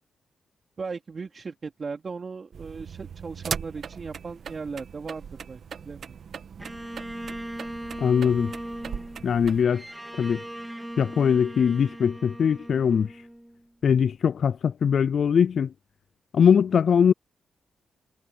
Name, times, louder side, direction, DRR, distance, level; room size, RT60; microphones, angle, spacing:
voice 1, 0.8-6.2, right 4 dB, 45° right, 2.9 m, -37 dB
sound 1, 2.5-9.6, right 7 dB, 65° right, 1.3 m, -39 dB
Bowed string instrument, 6.6-13.9, right 1 dB, 5° right, 3.6 m, -39 dB
voice 2, 8.0-8.5 9.2-9.8 10.2-10.4 11.0-13.1 13.8-15.7 16.3-17.1, left 7 dB, 60° left, 0.3 m, -21 dB
cardioid pair, 80°, 0 cm